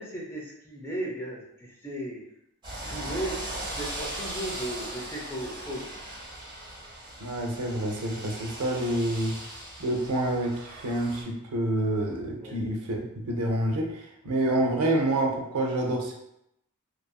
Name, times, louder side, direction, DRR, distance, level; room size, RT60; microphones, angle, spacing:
voice 1, 0.0-2.2 2.8-3.4 3.7-5.9 12.4-12.6, right 1 dB, 10° left, -4 dB, 0.5 m, -36 dB
sound 1, 2.6-11.2, right 1 dB, 20° right, 0.8 m, -39 dB
voice 2, 7.2-9.4 9.8-16.1, right 1 dB, 85° right, 1 dB, 0.6 m, -28 dB
2.7 x 2.4 x 2.3 m, 0.79 s
head